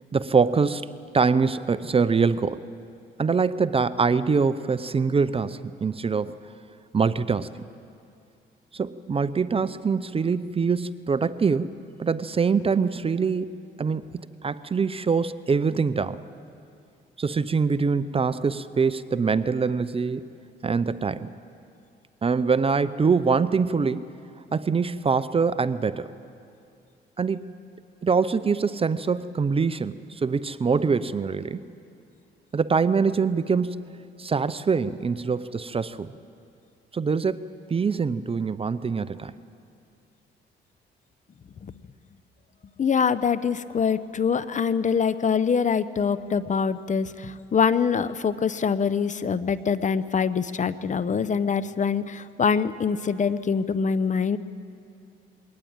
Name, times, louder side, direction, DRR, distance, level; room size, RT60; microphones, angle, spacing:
voice 1, 0.1-2.7 3.2-6.4 6.9-7.6 8.7-14.0 14.4-16.2 17.2-20.3 20.6-21.3 22.2-24.1 24.5-26.1 27.2-27.6 28.0-31.6 32.5-36.1 36.9-39.3, right 5 dB, 30° right, 15 dB, 0.6 m, -24 dB
voice 2, 42.8-54.4, left 6 dB, 40° left, 15 dB, 0.8 m, -24 dB
22.0 x 18.5 x 8.8 m, 2.5 s
cardioid pair, 90°, 20 cm